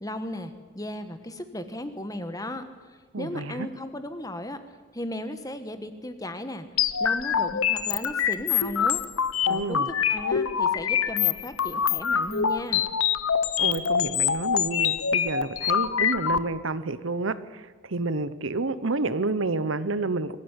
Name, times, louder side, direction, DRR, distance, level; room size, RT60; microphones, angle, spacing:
voice 1, 0.0-2.6 3.2-4.6 4.9-6.7 7.0-9.0 9.4-12.8, left 1 dB, 15° left, 9 dB, 1.4 m, -35 dB
voice 2, 3.1-3.7 9.5-9.9 13.6-20.4, right 3 dB, 65° right, 14 dB, 1.0 m, -29 dB
sound 1, 6.8-16.4, left 8 dB, 80° left, 1.0 m, -25 dB
24.0 x 15.0 x 9.9 m, 1.4 s
head